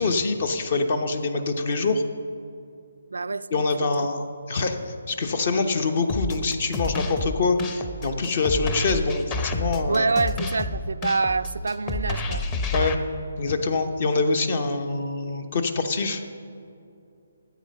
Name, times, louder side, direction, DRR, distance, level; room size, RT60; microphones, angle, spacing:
voice 1, 0.0-2.0 3.5-10.1 12.7-13.0 13.4-16.2, left 3 dB, 50° left, 0.9 m, -25 dB
voice 2, 3.1-4.1 9.9-12.9, right 4 dB, 80° right, 0.3 m, -27 dB
sound 1, 6.1-12.9, left 2 dB, 25° left, 0.8 m, -29 dB
12.5 x 8.3 x 5.5 m
hypercardioid pair, 150°, 0 cm